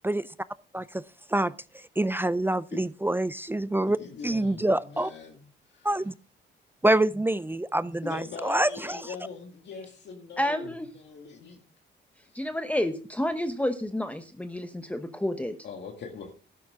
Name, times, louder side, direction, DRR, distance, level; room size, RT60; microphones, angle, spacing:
voice 1, 2.0-4.0 4.2-5.1 5.8-6.1 6.8-9.0, right 1 dB, 10° right, 17 dB, 0.4 m, -26 dB
voice 2, 3.9-5.9 8.0-11.6 12.3-12.4 15.6-16.4, left 5 dB, 65° left, 2 dB, 2.1 m, -42 dB
voice 3, 10.4-10.9 12.3-15.6, left 1 dB, 5° left, 8 dB, 1.0 m, -30 dB
12.0 x 10.5 x 3.6 m, 0.37 s
cardioid pair, 90°, 20 cm